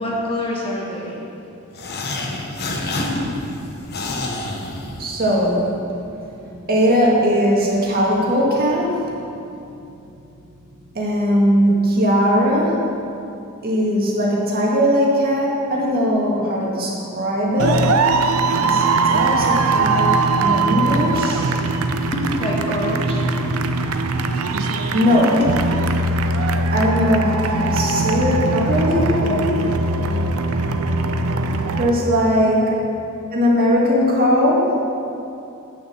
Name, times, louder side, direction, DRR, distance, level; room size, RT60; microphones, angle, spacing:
voice 1, 0.0-1.5 3.0-3.1 22.1-23.3 25.2-25.4 28.9-29.7 32.4-32.8, left 1 dB, 25° left, -4 dB, 1.6 m, -26 dB
sound 1, 1.7-5.4, left 2 dB, 50° left, 1.0 m, -28 dB
voice 2, 4.8-9.2 10.9-12.9 13.6-17.9 18.5-20.1 20.4-21.6 24.9-25.5 26.7-29.2 31.7-32.7 33.3-34.8, equal, 45° right, -4 dB, 1.9 m, -19 dB
sound 2, 17.6-31.9, right 3 dB, 75° right, 0.6 m, -20 dB
9.1 x 6.5 x 7.0 m, 2.7 s
head